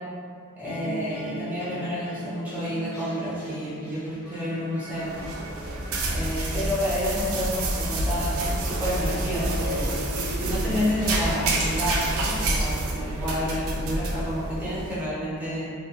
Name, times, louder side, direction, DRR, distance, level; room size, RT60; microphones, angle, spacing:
sound 1, 0.6-7.7, equal, 45° left, 1.2 m, -40 dB
voice 1, 0.6-5.1 6.1-10.0 10.4-15.7, equal, 5° right, -9 dB, 0.5 m, -30 dB
sound 2, 5.0-15.0, right 2 dB, 70° right, 0.4 m, -28 dB
2.6 x 2.1 x 2.5 m, 2.4 s
head